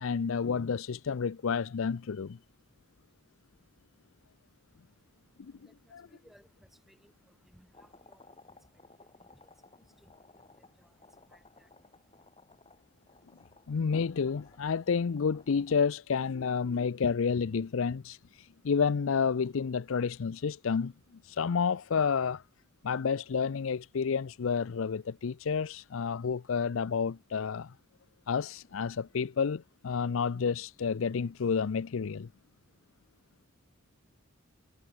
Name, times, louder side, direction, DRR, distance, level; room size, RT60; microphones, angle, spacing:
voice 1, 0.0-2.4 5.4-5.5 5.9-6.0 13.7-18.2 18.6-20.9 21.3-22.4 22.8-27.7 28.3-32.3, left 6 dB, 65° left, 0.5 m, -30 dB
voice 2, 4.7-12.3, equal, ahead, 6.3 m, -65 dB
sound 1, 7.7-16.0, left 3 dB, 25° left, 4.1 m, -59 dB
head